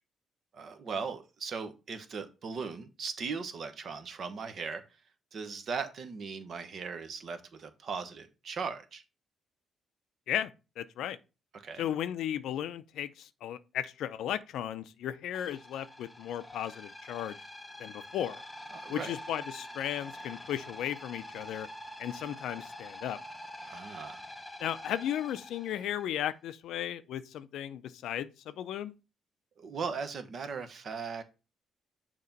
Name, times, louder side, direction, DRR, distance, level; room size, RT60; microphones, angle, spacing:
voice 1, 0.5-4.8 5.3-9.0 11.5-11.9 18.7-19.1 23.6-24.2 29.6-31.2, right 5 dB, 55° right, 1.0 m, -38 dB
voice 2, 10.8-11.2 11.8-17.4 17.8-18.4 18.9-21.7 22.0-23.2 24.6-28.9, left 11 dB, 80° left, 0.4 m, -35 dB
sound 1, 15.3-26.1, left 1 dB, 10° left, 0.8 m, -46 dB
6.8 x 3.0 x 5.2 m
cardioid pair, 90°, 0 cm